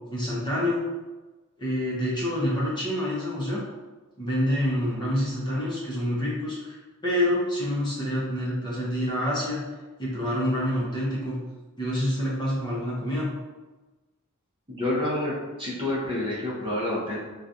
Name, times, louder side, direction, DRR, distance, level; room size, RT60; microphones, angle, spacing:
voice 1, 0.1-0.8 1.6-3.6 4.2-6.8 7.0-9.6 10.0-11.4 11.8-13.3, left 1 dB, 20° left, -7 dB, 0.8 m, -27 dB
voice 2, 14.7-15.3 15.6-17.2, left 1 dB, 25° right, -7 dB, 0.8 m, -28 dB
3.1 x 2.3 x 2.6 m, 1.2 s
head